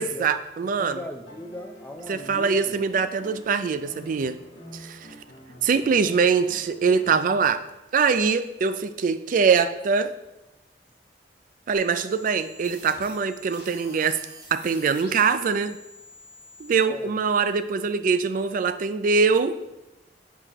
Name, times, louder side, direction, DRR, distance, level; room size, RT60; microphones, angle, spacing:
voice 1, 0.0-1.0 2.1-4.4 4.7-5.1 5.6-7.6 7.9-10.1 11.7-14.2 14.5-15.8 16.6-19.6, right 5 dB, 50° right, 12 dB, 0.3 m, -23 dB
voice 2, 0.6-2.8 16.8-17.2, left 1 dB, 10° left, 4 dB, 0.5 m, -39 dB
sound 1, 1.2-7.7 9.2-9.3, equal, 80° left, 1.1 m, -47 dB
sound 2, 11.7-16.7, equal, 75° right, 1.9 m, -47 dB
7.7 x 4.5 x 3.0 m, 0.96 s
head